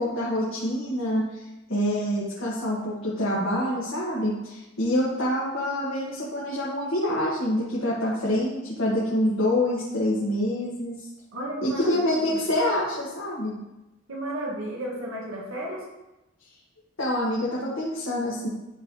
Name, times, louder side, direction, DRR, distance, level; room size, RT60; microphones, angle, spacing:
voice 1, 0.0-1.4 1.7-11.0 11.6-13.5 17.0-18.5, left 1 dB, 75° left, -7 dB, 1.5 m, -26 dB
voice 2, 11.3-12.4 14.1-15.8, right 1 dB, 85° right, -3 dB, 1.5 m, -33 dB
11.0 x 3.8 x 2.9 m, 0.97 s
head